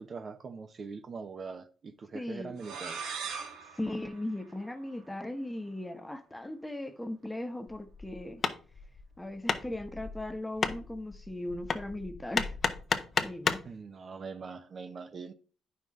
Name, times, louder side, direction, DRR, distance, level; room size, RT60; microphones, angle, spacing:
voice 1, 0.0-3.1 13.6-15.3, right 5 dB, 45° right, 0.8 m, -42 dB
voice 2, 2.1-2.5 3.7-8.4 9.2-12.5 13.2-13.6, left 1 dB, 10° left, 1.1 m, -38 dB
sound 1, 2.6-5.2, right 6 dB, 85° right, 1.8 m, -41 dB
Hammer, 7.7-13.7, left 5 dB, 45° left, 0.9 m, -33 dB
9.2 x 5.8 x 3.7 m
cardioid pair, 90°, 0 cm